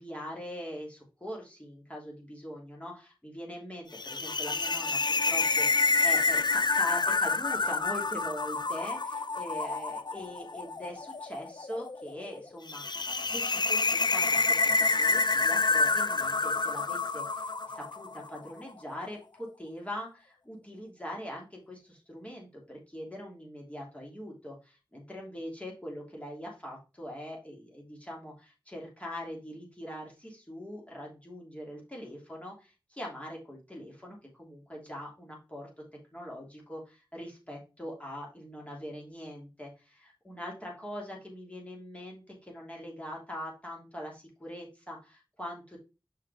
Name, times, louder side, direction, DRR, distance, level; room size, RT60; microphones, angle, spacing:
voice 1, 0.0-35.8 36.1-45.8, equal, 15° left, -2 dB, 2.8 m, -42 dB
sound 1, 3.9-18.3, left 3 dB, 55° left, 0.5 m, -28 dB
6.2 x 5.7 x 3.5 m, 0.30 s
wide cardioid pair, 55°, 9 cm